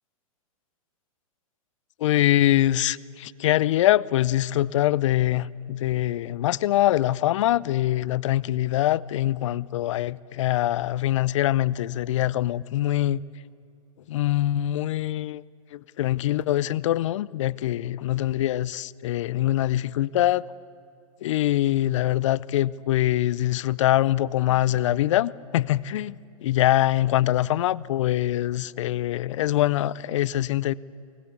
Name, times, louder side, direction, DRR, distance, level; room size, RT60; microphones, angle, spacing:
voice 1, 2.0-13.2 14.1-15.4 15.7-20.5 21.2-30.7, left 14 dB, 60° left, 0.6 m, -23 dB
23.5 x 19.0 x 8.3 m
hypercardioid pair, 125°, 18 cm